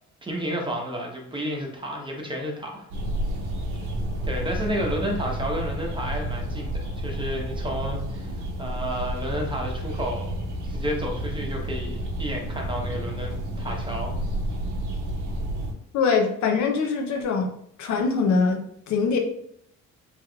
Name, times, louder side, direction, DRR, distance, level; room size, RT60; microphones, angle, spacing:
voice 1, 0.2-2.8 4.2-10.4 10.6-14.1, equal, 15° right, 0 dB, 0.8 m, -31 dB
sound 1, 2.9-15.7, right 1 dB, 80° right, 0.9 m, -30 dB
voice 2, 15.9-17.5 17.8-19.2, left 5 dB, 70° left, 2 dB, 0.6 m, -23 dB
3.4 x 3.0 x 2.3 m, 0.69 s
cardioid pair, 90°, 30 cm